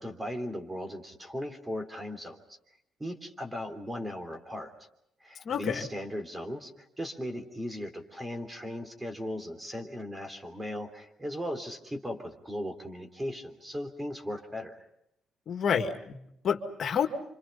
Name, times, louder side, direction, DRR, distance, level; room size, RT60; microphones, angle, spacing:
voice 1, 0.0-2.6 3.0-4.7 5.2-6.7 7.0-14.8, equal, 15° right, 6 dB, 3.4 m, -37 dB
voice 2, 5.5-5.9 15.5-17.1, left 7 dB, 60° left, 6 dB, 2.0 m, -29 dB
29.0 x 26.0 x 5.7 m, 0.78 s
cardioid pair, 90°, 0 cm